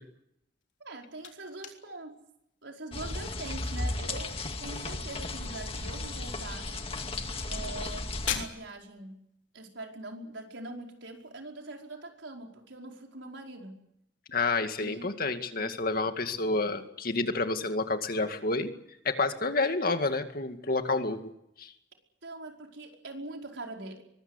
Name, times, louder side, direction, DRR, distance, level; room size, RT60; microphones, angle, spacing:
sound 1, 0.6-11.3, left 9 dB, 80° left, 3.6 m, -45 dB
voice 1, 0.8-2.2 2.6-4.3 4.6-6.9 7.5-9.2 9.5-13.8 14.8-15.1 15.6-15.8 22.2-24.0, right 2 dB, 75° right, 2 dB, 5.1 m, -43 dB
sound 2, 2.9-8.5, left 2 dB, 30° left, 2.1 m, -35 dB
voice 2, 14.3-18.7 19.0-21.3 21.6-21.7, left 3 dB, 50° left, 7 dB, 2.2 m, -29 dB
24.0 x 20.5 x 8.2 m, 0.77 s
head